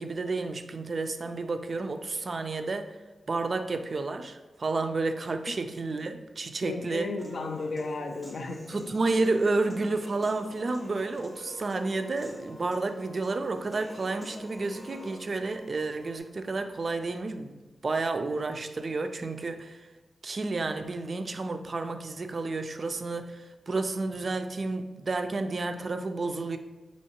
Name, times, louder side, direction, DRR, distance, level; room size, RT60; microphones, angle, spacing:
voice 1, 0.0-2.9 3.3-7.1 8.7-19.8 20.2-26.6, right 3 dB, 45° right, 8 dB, 0.3 m, -31 dB
voice 2, 6.6-8.7, left 3 dB, 60° left, 6 dB, 0.4 m, -34 dB
Human voice / Piano, 7.2-15.2, left 1 dB, 15° left, 0.7 m, -47 dB
sound 1, 9.4-16.2, left 1 dB, 85° left, 0.8 m, -54 dB
5.4 x 2.9 x 2.8 m, 1.2 s
wide cardioid pair, 115°, 0 cm